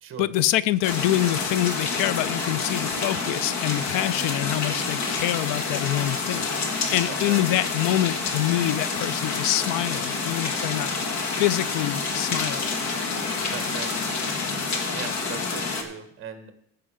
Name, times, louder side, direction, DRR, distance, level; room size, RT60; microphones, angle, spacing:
voice 1, 0.2-6.4 6.9-10.9 11.4-12.7, left 14 dB, 80° left, 0.5 m, -25 dB
sound 1, 0.8-15.8, left 4 dB, 60° left, 1.7 m, -28 dB
voice 2, 7.1-7.4 13.5-13.9 14.9-16.5, right 8 dB, 40° right, 1.4 m, -38 dB
14.5 x 5.9 x 5.0 m
cardioid pair, 175°, 32 cm